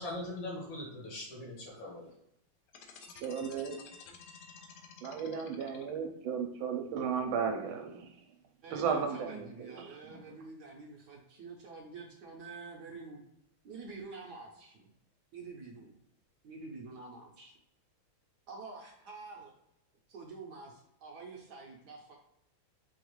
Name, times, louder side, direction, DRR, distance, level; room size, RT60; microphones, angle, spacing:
voice 1, 0.0-2.1, left 1 dB, 70° left, -3 dB, 2.1 m, -41 dB
sound 1, 2.7-6.2, left 6 dB, 85° left, 0.8 m, -52 dB
voice 2, 3.2-3.8 5.0-8.1 8.7-10.2, right 6 dB, 80° right, 4 dB, 1.4 m, -35 dB
voice 3, 8.6-13.2 13.6-14.9 15.3-16.0 16.4-17.5 18.5-19.5 20.1-22.1, right 3 dB, 65° right, -1 dB, 1.1 m, -47 dB
5.2 x 2.4 x 3.1 m, 0.79 s
omnidirectional pair, 2.2 m